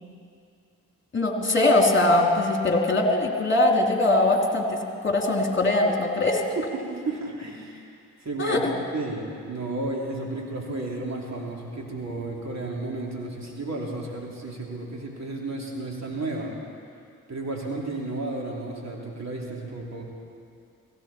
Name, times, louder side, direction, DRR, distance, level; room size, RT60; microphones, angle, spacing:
voice 1, 1.1-6.4 8.4-8.7, left 2 dB, 30° left, 1 dB, 2.7 m, -21 dB
voice 2, 6.6-7.8 8.2-8.7 8.9-16.5 17.3-20.1, right 2 dB, 45° right, -2 dB, 3.5 m, -32 dB
17.0 x 16.5 x 4.4 m, 2.4 s
supercardioid pair, 50°, 37 cm